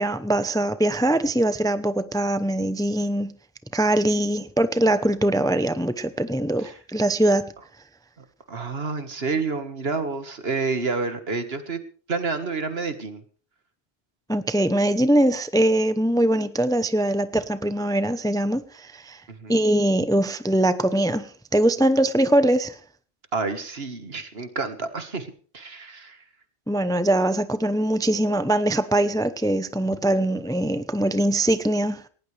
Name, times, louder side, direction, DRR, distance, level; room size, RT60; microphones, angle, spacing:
voice 1, 0.0-3.3 3.7-7.5 14.3-19.2 19.5-22.8 26.7-32.0, right 1 dB, 5° left, 0.7 m, -22 dB
voice 2, 8.5-11.8 12.1-13.2 19.3-19.5 23.3-25.3 25.5-26.2, right 4 dB, 65° right, 1.9 m, -29 dB
18.5 x 18.0 x 3.4 m
omnidirectional pair, 1.1 m